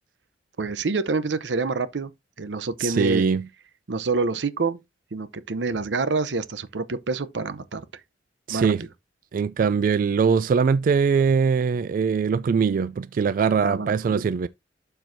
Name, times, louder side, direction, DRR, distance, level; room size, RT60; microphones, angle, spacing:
voice 1, 0.6-2.1 2.4-3.2 3.9-4.8 5.1-7.8 8.5-8.7 13.6-14.2, right 3 dB, 90° right, 0.7 m, -27 dB
voice 2, 2.8-3.4 8.5-8.8 9.3-14.5, right 6 dB, 50° right, 0.3 m, -22 dB
12.0 x 4.5 x 2.6 m
head